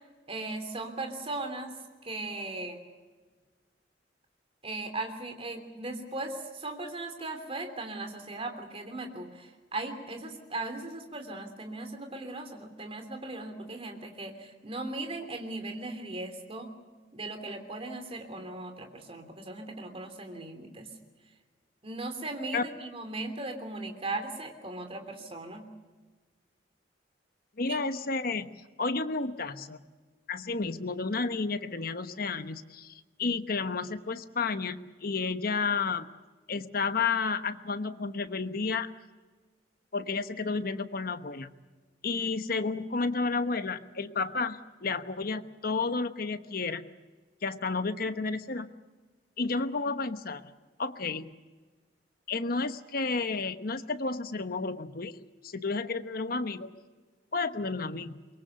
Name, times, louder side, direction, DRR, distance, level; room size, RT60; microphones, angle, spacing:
voice 1, 0.3-1.7 2.0-2.8 4.6-16.7 17.1-20.9 21.8-25.7 27.7-27.8, right 2 dB, 35° right, 6 dB, 3.1 m, -38 dB
voice 2, 27.6-28.5 28.8-29.8 30.3-36.1 36.5-38.9 39.9-41.5 42.0-46.8 47.4-48.7 49.4-50.4 50.8-51.3 52.3-55.2 55.4-56.7 57.3-58.2, left 4 dB, 55° left, 10 dB, 1.1 m, -31 dB
23.5 x 23.0 x 6.8 m, 1.3 s
head